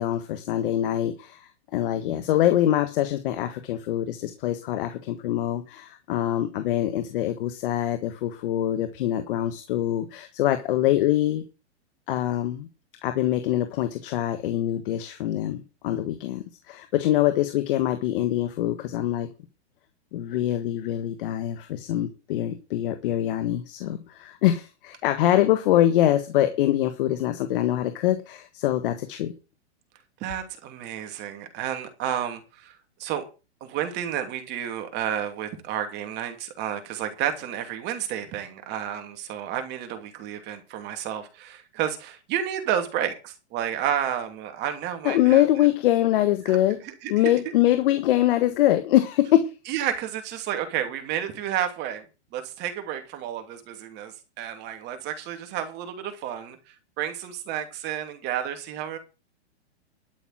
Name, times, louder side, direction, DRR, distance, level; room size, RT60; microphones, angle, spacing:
voice 1, 0.0-11.4 12.1-12.7 13.0-19.3 20.1-29.3 45.0-46.8 47.1-49.5, left 13 dB, 50° left, 9 dB, 1.6 m, -24 dB
voice 2, 30.2-32.7 33.0-33.2 33.6-45.4 46.5-46.6 46.8-47.1 49.7-52.0 52.3-59.0, right 10 dB, 30° right, 7 dB, 2.9 m, -31 dB
12.5 x 6.8 x 7.5 m, 0.31 s
hypercardioid pair, 145°, 34 cm